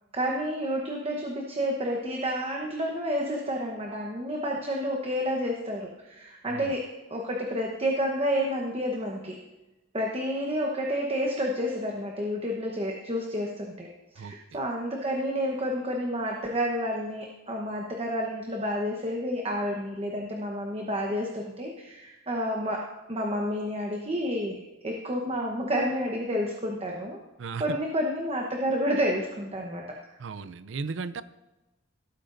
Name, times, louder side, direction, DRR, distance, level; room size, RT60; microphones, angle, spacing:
voice 1, 0.1-9.4 9.9-13.9 14.1-27.2 27.6-29.8, equal, 30° right, 0 dB, 1.0 m, -30 dB
voice 2, 30.2-31.2, right 4 dB, 70° right, 15 dB, 0.5 m, -35 dB
17.5 x 8.8 x 2.6 m, 1.0 s
head